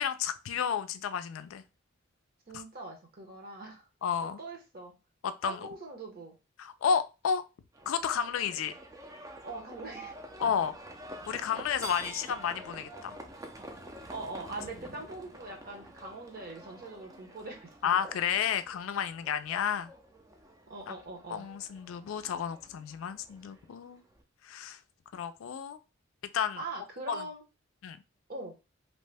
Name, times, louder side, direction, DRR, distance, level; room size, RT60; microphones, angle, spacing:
voice 1, 0.0-1.6 2.5-2.6 4.0-4.4 5.2-5.6 6.6-7.4 7.9-8.7 10.4-10.7 11.3-13.2 17.8-19.9 20.9-21.0 21.3-24.0 24.4-24.8 25.1-25.8 26.3-26.6 27.1-27.3 27.8-28.0, left 7 dB, 75° left, 0.3 m, -31 dB
voice 2, 2.5-3.9 4.4-4.9 5.4-6.3 9.4-10.7 14.1-18.4 20.7-21.5 26.6-27.4 28.3-28.5, right 2 dB, 50° right, 0.9 m, -42 dB
Livestock farm animals working animals, 7.7-24.2, right 1 dB, 15° right, 0.4 m, -48 dB
2.8 x 2.1 x 3.3 m
head